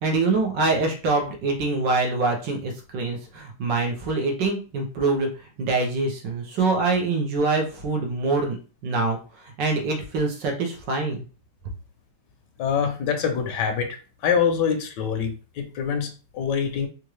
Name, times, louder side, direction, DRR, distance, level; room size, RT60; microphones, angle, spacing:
voice 1, 0.0-5.3 5.6-8.6 8.8-11.2, right 3 dB, 85° right, 1 dB, 1.6 m, -24 dB
voice 2, 12.6-13.9 14.2-16.9, left 7 dB, 80° left, 5 dB, 1.3 m, -25 dB
4.4 x 2.4 x 3.1 m, 0.36 s
omnidirectional pair, 1.9 m